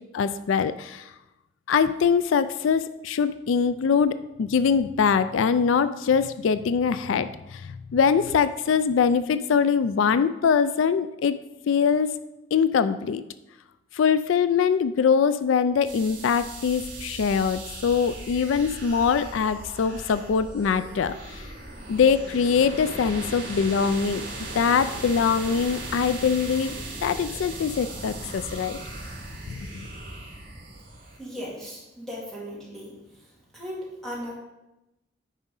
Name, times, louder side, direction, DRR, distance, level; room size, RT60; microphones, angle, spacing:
voice 1, 0.1-1.1 1.7-12.1 12.5-13.2 13.9-21.5 21.9-24.3 24.5-26.7 27.0-28.8 29.5-29.7, left 6 dB, 85° left, 13 dB, 0.4 m, -23 dB
sound 1, 15.8-31.2, right 2 dB, 45° right, 3.4 m, -38 dB
voice 2, 31.2-32.9 33.5-34.3, equal, ahead, -5 dB, 2.2 m, -37 dB
9.4 x 4.9 x 5.3 m, 0.96 s
head